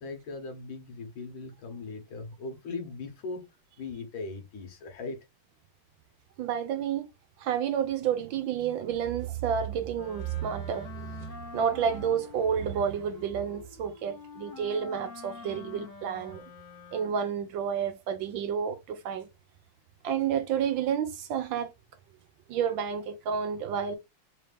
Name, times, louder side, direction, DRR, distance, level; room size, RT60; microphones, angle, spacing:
voice 1, 0.0-3.5 3.8-5.2, left 3 dB, 70° left, 1.9 m, -39 dB
voice 2, 6.4-7.1 7.4-16.4 16.9-19.3 20.0-21.7 22.5-24.0, right 8 dB, 70° right, 1.3 m, -30 dB
Wind instrument woodwind instrument, 9.9-17.4, left 5 dB, 55° left, 1.0 m, -47 dB
4.0 x 2.7 x 3.3 m
omnidirectional pair, 2.3 m